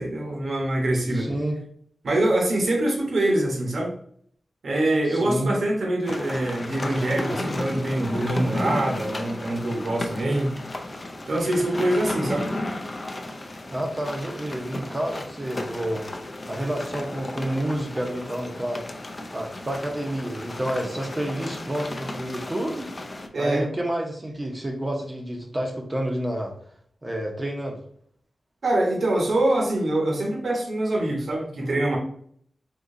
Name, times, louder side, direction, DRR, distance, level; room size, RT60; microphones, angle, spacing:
voice 1, 0.0-1.3 2.0-3.9 4.6-10.5 11.3-12.5 23.3-23.7 28.6-32.0, right 1 dB, 65° right, 0 dB, 1.0 m, -24 dB
voice 2, 1.1-1.6 5.1-5.5 13.7-16.1 16.5-18.8 19.3-22.9 23.4-26.5 27.0-27.8, right 1 dB, 20° right, 0 dB, 0.6 m, -29 dB
sound 1, 6.0-23.3, left 1 dB, 30° left, 0.4 m, -34 dB
3.7 x 2.9 x 2.6 m, 0.63 s
wide cardioid pair, 120°, 0 cm